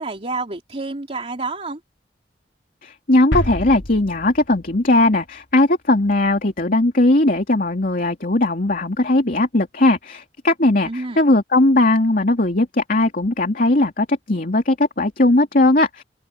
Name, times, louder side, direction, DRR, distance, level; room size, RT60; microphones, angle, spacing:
voice 1, 0.0-1.8 10.8-11.2, right 3 dB, 35° right, 2.7 m, -29 dB
voice 2, 2.8-16.0, left 2 dB, 55° left, 2.8 m, -18 dB
sound 1, 3.3-5.2 5.4-5.5, left 1 dB, 80° left, 2.5 m, -28 dB
head